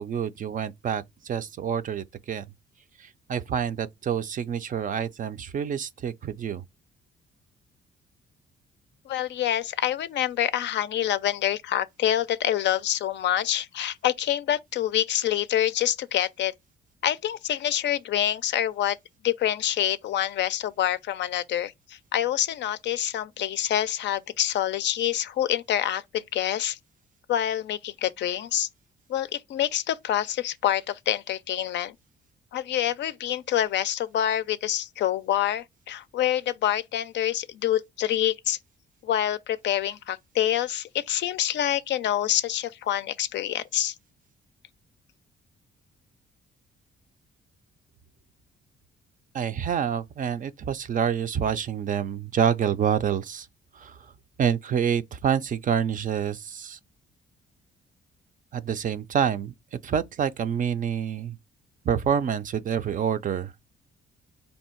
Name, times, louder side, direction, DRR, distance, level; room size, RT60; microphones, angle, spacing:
voice 1, 0.0-2.5 3.0-6.6 49.3-53.5 53.7-54.1 54.4-56.8 58.5-61.4 61.8-63.5, right 8 dB, 40° right, 0.4 m, -27 dB
voice 2, 9.1-16.5 17.0-19.0 19.2-26.8 27.3-28.7 29.1-32.0 32.5-38.6 39.0-43.9, left 11 dB, 65° left, 0.4 m, -26 dB
3.3 x 2.7 x 4.4 m
cardioid pair, 90°, 20 cm